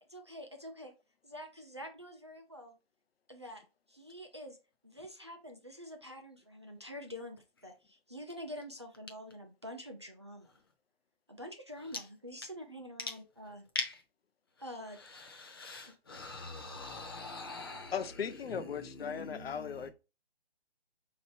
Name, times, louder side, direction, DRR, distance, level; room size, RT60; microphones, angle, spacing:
voice 1, 0.1-0.9 1.2-2.7 3.3-3.6 3.9-4.6 4.8-10.5 11.3-13.6 14.6-15.0 15.9-16.0, equal, 30° right, 0.4 m, -46 dB
voice 2, 15.0-17.9 18.5-19.9, left 3 dB, 25° left, 0.6 m, -42 dB
voice 3, 17.6-19.9, left 7 dB, 70° left, 0.6 m, -38 dB
5.3 x 2.8 x 3.2 m
hypercardioid pair, 165°, 31 cm